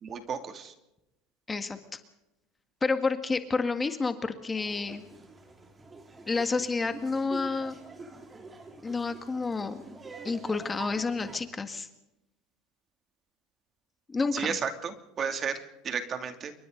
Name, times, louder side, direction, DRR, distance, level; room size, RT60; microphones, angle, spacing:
voice 1, 0.0-0.7 14.3-16.5, right 6 dB, 35° right, 7 dB, 2.7 m, -33 dB
voice 2, 2.8-5.0 6.3-7.8 8.8-9.8 10.2-11.9 14.1-14.6, left 4 dB, 20° left, 8 dB, 1.9 m, -29 dB
Laughter, 4.6-11.5, right 3 dB, 20° right, 3.6 m, -46 dB
28.0 x 23.5 x 4.0 m, 0.91 s
supercardioid pair, 105°, 0 cm